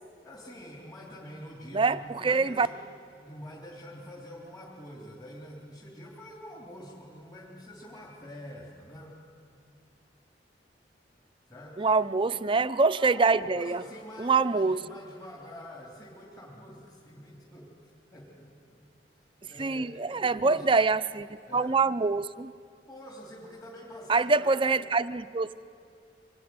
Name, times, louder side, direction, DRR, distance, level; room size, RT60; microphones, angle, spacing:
voice 1, 0.2-2.8 3.2-9.2 11.5-11.9 13.0-18.8 19.4-20.6 21.5-21.8 22.9-24.8, equal, 25° left, -4 dB, 3.3 m, -46 dB
voice 2, 1.7-2.7 11.8-13.8 14.2-14.8 19.6-21.3 21.5-22.5 24.1-25.7, right 4 dB, 30° right, 13 dB, 0.5 m, -25 dB
25.0 x 21.0 x 9.6 m, 2.4 s
head